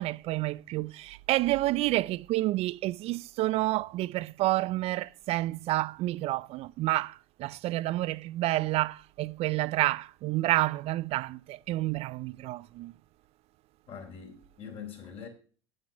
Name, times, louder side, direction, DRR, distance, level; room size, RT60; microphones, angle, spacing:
voice 1, 0.0-7.1 7.4-12.9, right 17 dB, 50° right, 0.4 m, -29 dB
voice 2, 13.9-15.3, left 7 dB, 45° left, 4.5 m, -43 dB
9.8 x 8.9 x 5.9 m
hypercardioid pair, 80°, 13 cm